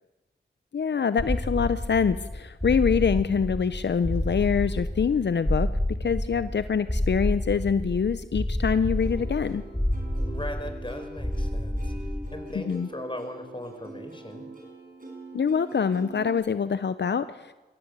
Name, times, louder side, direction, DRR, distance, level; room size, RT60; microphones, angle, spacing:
voice 1, 0.7-5.7 6.0-9.6 12.5-12.9 15.3-17.5, left 6 dB, 80° left, 13 dB, 0.7 m, -25 dB
sound 1, 1.2-12.5, left 1 dB, 10° left, 3.0 m, -29 dB
Plucked string instrument, 9.0-16.4, right 2 dB, 50° right, 6.5 m, -43 dB
voice 2, 10.3-11.9 12.3-14.5, left 1 dB, 30° left, 6 dB, 4.5 m, -38 dB
22.5 x 16.0 x 8.2 m, 1.2 s
cardioid pair, 45°, 18 cm